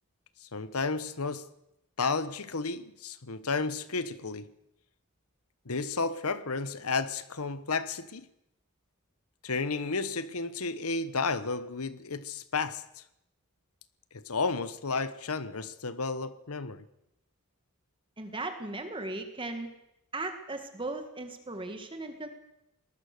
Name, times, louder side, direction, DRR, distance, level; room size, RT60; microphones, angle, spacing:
voice 1, 0.4-1.4 2.0-4.5 5.6-8.2 9.4-13.0 14.1-16.8, left 4 dB, 75° left, 1.2 m, -32 dB
voice 2, 18.2-19.7 20.1-22.3, right 2 dB, 20° right, 1.9 m, -37 dB
22.5 x 19.5 x 6.8 m
head